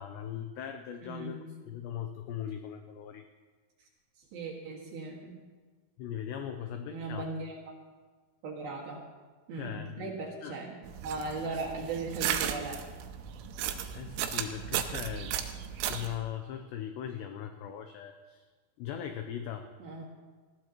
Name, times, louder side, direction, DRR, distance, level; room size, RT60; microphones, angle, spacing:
voice 1, 0.0-3.3 6.0-7.3 8.6-8.8 9.5-10.1 10.4-10.6 13.9-15.4 15.9-18.4 18.8-19.7, left 9 dB, 90° left, 7 dB, 2.4 m, -39 dB
voice 2, 1.0-1.6 4.2-5.5 6.9-7.6 8.4-9.0 9.5-12.8 19.8-20.0, right 3 dB, 60° right, -3 dB, 3.2 m, -38 dB
sound 1, 10.8-16.2, right 9 dB, 85° right, 3.2 m, -35 dB
20.0 x 16.0 x 3.0 m, 1.4 s
omnidirectional pair, 5.8 m